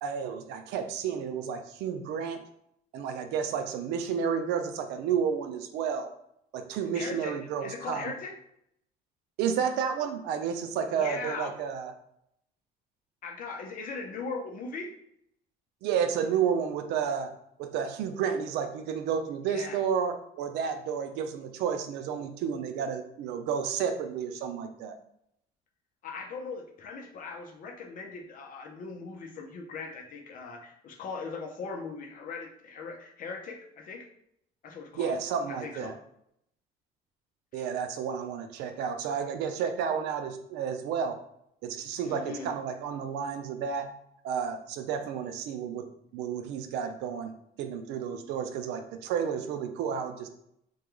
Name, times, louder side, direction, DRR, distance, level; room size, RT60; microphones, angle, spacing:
voice 1, 0.0-2.4 2.9-6.1 6.5-8.1 9.4-11.9 15.8-17.3 17.6-25.0 35.0-35.9 37.5-41.2 41.6-43.9 44.2-45.9 46.1-50.3, right 7 dB, 90° right, 7 dB, 0.4 m, -31 dB
voice 2, 6.9-8.3 10.9-11.5 13.2-14.9 19.4-19.8 26.0-34.1 34.6-35.1 35.5-36.0 37.5-37.7 42.0-42.5, left 4 dB, 55° left, 2 dB, 0.6 m, -39 dB
2.2 x 2.2 x 3.0 m, 0.74 s
cardioid pair, 110°, 17 cm